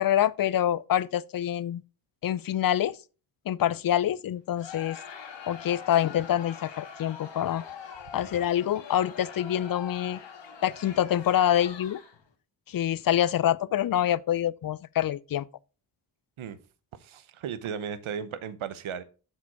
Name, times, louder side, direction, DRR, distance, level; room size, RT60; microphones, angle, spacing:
voice 1, 0.0-1.8 2.2-3.0 3.5-5.0 5.5-7.6 8.1-10.2 10.6-12.0 12.7-15.5, left 11 dB, 45° left, 0.5 m, -26 dB
Crowd, 4.6-12.3, left 7 dB, 65° left, 1.5 m, -43 dB
voice 2, 17.0-19.0, right 7 dB, 75° right, 0.9 m, -35 dB
6.8 x 5.0 x 4.6 m
cardioid pair, 50°, 48 cm